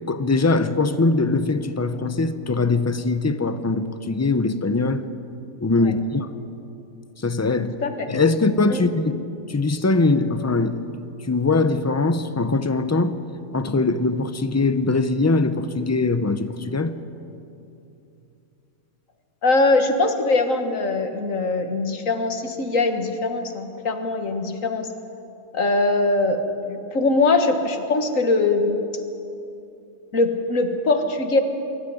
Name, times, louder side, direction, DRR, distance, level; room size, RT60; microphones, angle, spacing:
voice 1, 0.0-5.0 5.6-6.3 7.2-7.8 8.1-9.2 9.5-10.8 11.3-13.1 13.5-16.9, left 3 dB, 15° left, 11 dB, 0.5 m, -21 dB
voice 2, 7.6-8.1 8.7-8.9 19.4-24.9 25.5-28.8 30.1-31.4, left 3 dB, 70° left, 6 dB, 1.9 m, -22 dB
23.0 x 13.5 x 9.6 m, 2.8 s
omnidirectional pair, 1.4 m